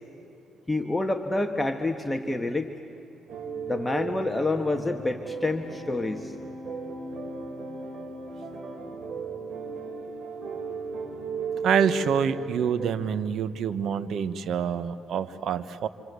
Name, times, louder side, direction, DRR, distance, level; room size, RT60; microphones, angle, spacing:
voice 1, 0.7-2.7 3.7-6.3, left 2 dB, 15° left, 5 dB, 1.4 m, -28 dB
sound 1, 3.3-12.9, right 4 dB, 50° right, 4.5 m, -36 dB
voice 2, 11.6-15.9, right 7 dB, 70° right, 12 dB, 1.2 m, -26 dB
28.0 x 26.5 x 8.2 m, 2.8 s
cardioid pair, 90°, 0 cm